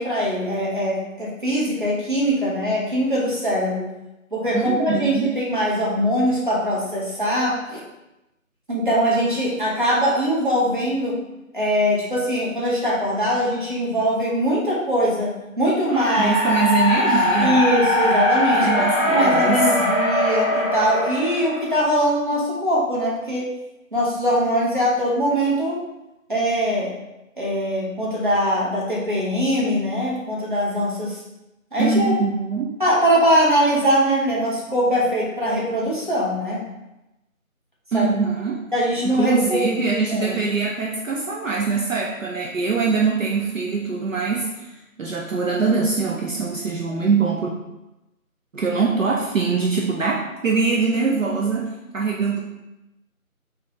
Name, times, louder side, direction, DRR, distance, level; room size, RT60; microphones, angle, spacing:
voice 1, 0.0-3.9 4.3-7.8 8.7-11.2 11.5-16.3 17.4-18.8 19.1-23.5 23.9-25.8 26.3-26.9 27.4-31.2 31.7-32.1 32.8-36.6 37.9-38.1 38.7-39.8 40.1-40.4, equal, 35° right, -5 dB, 0.8 m, -22 dB
voice 2, 4.5-5.3 16.2-17.6 18.5-19.6 31.8-32.8 37.9-38.7 39.0-44.7 45.0-47.5 48.5-52.4, right 4 dB, 65° right, -2 dB, 0.6 m, -23 dB
sound 1, 15.9-22.0, left 1 dB, 20° left, 1.3 m, -21 dB
3.6 x 2.8 x 3.0 m, 0.96 s
figure-of-eight pair, 170°, 42 cm